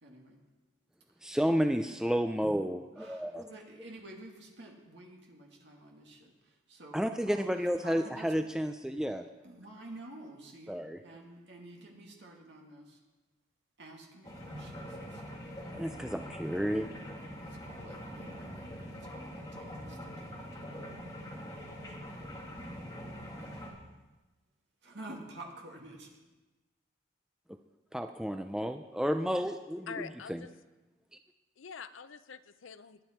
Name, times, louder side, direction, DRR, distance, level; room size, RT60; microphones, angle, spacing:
voice 1, 0.0-0.4 1.1-1.2 3.0-8.3 9.4-13.0 13.8-15.4 17.4-20.9 21.9-22.0 23.5-23.7 24.8-26.1, right 1 dB, 60° right, 0 dB, 2.3 m, -50 dB
voice 2, 1.2-3.5 6.9-9.3 10.7-11.0 15.7-16.9 27.5-27.6 27.9-30.5, equal, 5° right, 7 dB, 0.3 m, -31 dB
sound 1, 14.2-23.7, equal, 20° left, 2.3 m, -44 dB
voice 3, 29.9-30.5 31.6-33.0, left 6 dB, 85° left, 13 dB, 0.6 m, -45 dB
20.5 x 9.1 x 4.5 m, 1.1 s
head